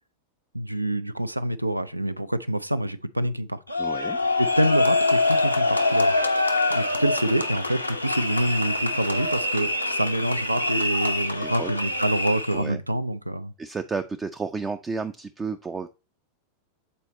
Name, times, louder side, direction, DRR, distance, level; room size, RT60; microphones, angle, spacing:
voice 1, 0.5-3.6 4.4-6.1 6.7-13.5, right 1 dB, 85° right, 0.4 m, -26 dB
sound 1, 3.7-12.6, left 2 dB, 90° left, 0.6 m, -25 dB
voice 2, 3.8-4.2 11.4-11.7 12.5-12.8 13.6-15.9, right 4 dB, 15° right, 0.4 m, -32 dB
6.9 x 4.1 x 4.1 m
figure-of-eight pair, 90°, 0 cm